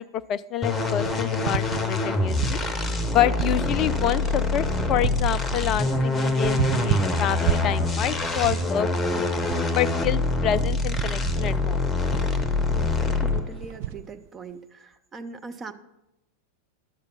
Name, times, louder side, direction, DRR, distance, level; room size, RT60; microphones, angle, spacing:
voice 1, 0.0-2.6 3.1-9.2 9.7-11.8, left 11 dB, 35° left, 19 dB, 0.3 m, -27 dB
sound 1, 0.6-13.6, left 2 dB, 15° left, 0.9 m, -25 dB
sound 2, 0.8-3.0 3.4-14.1, right 13 dB, 50° right, 0.4 m, -32 dB
voice 2, 12.7-15.7, right 4 dB, 20° right, 7 dB, 0.7 m, -40 dB
11.0 x 6.8 x 5.5 m, 0.91 s
figure-of-eight pair, 90°, 0 cm